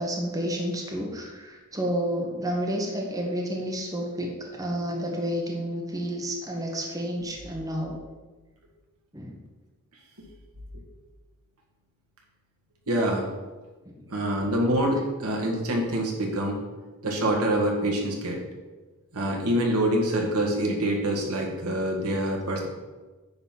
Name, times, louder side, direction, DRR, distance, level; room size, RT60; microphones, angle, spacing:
voice 1, 0.0-8.1 9.1-9.4 13.8-13.9, equal, 15° right, 0 dB, 1.1 m, -30 dB
voice 2, 12.9-13.3 14.1-16.6 17.0-18.4 19.1-22.7, right 1 dB, 80° right, -1 dB, 1.8 m, -26 dB
9.6 x 4.0 x 5.8 m, 1.2 s
head